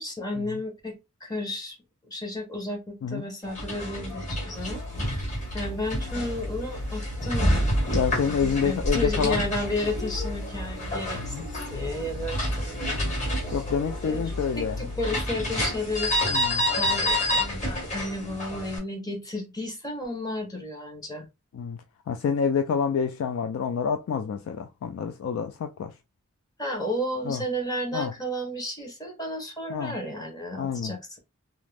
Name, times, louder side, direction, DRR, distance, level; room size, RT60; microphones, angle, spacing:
voice 1, 0.0-1.8 2.1-7.5 8.3-13.1 13.4-16.4 16.7-21.3 26.6-31.2, left 1 dB, 20° left, 0.8 m, -33 dB
sound 1, 3.4-18.8, left 1 dB, 35° left, 1.4 m, -29 dB
sound 2, 4.5-15.1, left 2 dB, 60° right, 0.4 m, -37 dB
voice 2, 7.9-9.4 11.1-11.4 12.9-13.1 13.5-14.9 16.3-16.7 21.5-25.9 27.3-27.4 27.9-28.1 29.7-30.0 30.6-30.9, left 6 dB, 85° left, 0.3 m, -28 dB
2.4 x 2.0 x 3.3 m
head